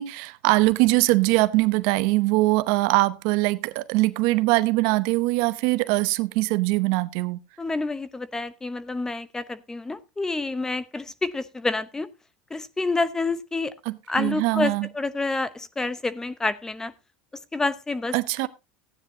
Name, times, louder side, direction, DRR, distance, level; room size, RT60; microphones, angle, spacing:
voice 1, 0.0-7.4 13.9-14.9 18.1-18.5, right 21 dB, 70° right, 0.8 m, -22 dB
voice 2, 7.6-12.1 12.5-13.7 14.1-16.9 17.5-18.1, left 3 dB, 10° left, 0.9 m, -28 dB
15.0 x 9.7 x 2.8 m
supercardioid pair, 120°, 4 cm